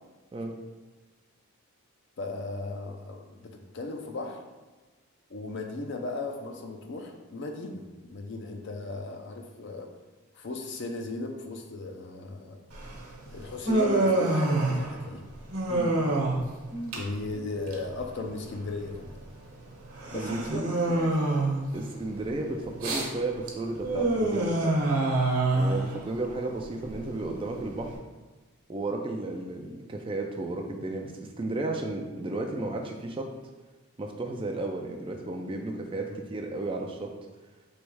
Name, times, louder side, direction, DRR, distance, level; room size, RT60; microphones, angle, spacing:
voice 1, 2.2-4.4 5.3-7.8 8.1-9.9 10.3-12.9 13.3-15.2 16.9-19.2 20.1-20.7 21.0-21.3 36.1-36.2, left 2 dB, 50° left, 3 dB, 0.5 m, -36 dB
Human voice, 12.7-27.9, right 2 dB, 90° right, 1.0 m, -28 dB
voice 2, 20.1-20.8 21.7-24.6 25.5-28.0 28.7-33.3 34.0-37.1, right 2 dB, 25° right, 2 dB, 0.3 m, -33 dB
3.2 x 3.1 x 4.7 m, 1.2 s
head